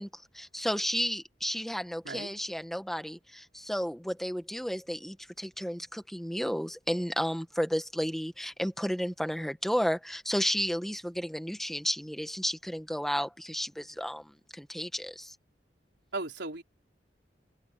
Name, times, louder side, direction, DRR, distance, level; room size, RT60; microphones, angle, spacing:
voice 1, 0.0-15.3, equal, ahead, 1.4 m, -32 dB
voice 2, 2.0-2.4 16.1-16.6, right 3 dB, 80° right, 3.7 m, -36 dB
head